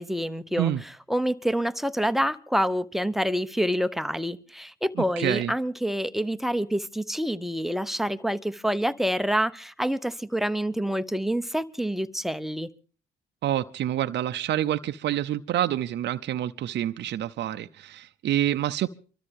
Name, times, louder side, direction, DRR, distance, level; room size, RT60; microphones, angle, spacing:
voice 1, 0.0-12.7, equal, ahead, 0.8 m, -27 dB
voice 2, 5.2-5.5 13.4-18.9, right 12 dB, 60° right, 0.7 m, -27 dB
24.0 x 13.5 x 3.5 m
supercardioid pair, 70°, 20 cm